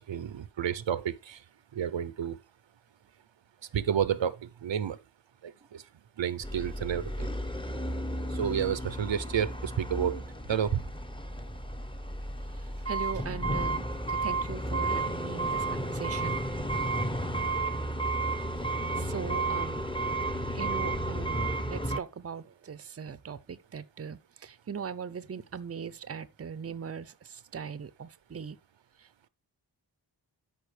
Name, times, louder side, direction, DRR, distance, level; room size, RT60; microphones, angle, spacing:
voice 1, 0.0-1.4 1.7-2.4 3.7-4.4 4.6-5.0 5.4-5.8 6.2-7.3 8.3-10.2 10.5-10.8, right 9 dB, 80° right, 0.8 m, -30 dB
sound 1, 6.4-22.0, right 2 dB, 10° left, 1.0 m, -32 dB
voice 2, 12.9-16.4 19.0-19.8 20.5-28.6 29.0-29.3, right 6 dB, 35° right, 0.6 m, -40 dB
13.0 x 5.1 x 3.3 m
wide cardioid pair, 85°, 44 cm